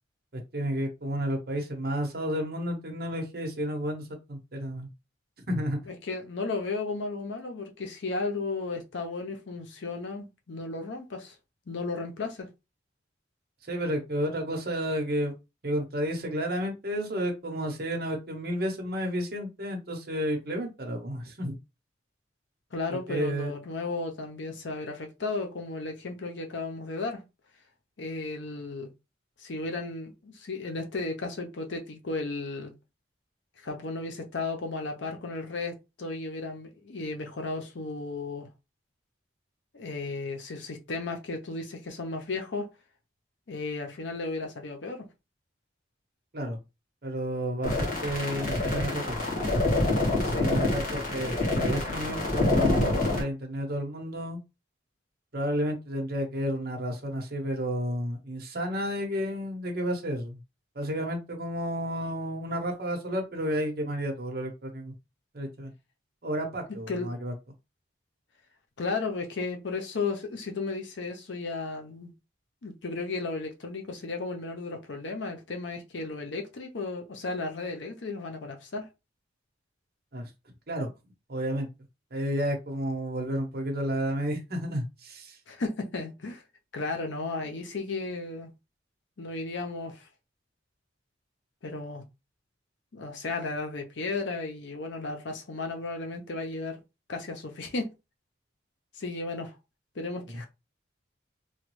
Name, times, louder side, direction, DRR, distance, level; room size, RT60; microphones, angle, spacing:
voice 1, 0.3-4.9 5.5-5.8 13.7-15.3 15.6-21.6 23.1-23.5 46.3-46.6 47.0-49.4 50.1-54.4 55.3-60.4 60.7-64.9 65.3-65.7 66.2-67.3 80.1-80.3 80.7-80.9 81.3-81.7 82.1-85.4 100.3-100.4, equal, 50° right, 0.9 m, -31 dB
voice 2, 5.9-11.3 11.7-12.5 22.7-27.2 28.0-28.9 29.4-32.7 33.6-38.5 39.7-42.7 43.5-45.1 50.3-50.6 66.9-67.1 68.8-72.1 72.6-78.9 85.5-86.4 86.7-88.5 89.2-90.1 91.6-92.0 92.9-96.8 97.1-97.9 99.0-99.5 100.0-100.5, left 3 dB, 75° left, 0.7 m, -34 dB
sound 1, 47.6-53.2, left 2 dB, 45° left, 1.4 m, -27 dB
3.0 x 2.2 x 3.1 m
head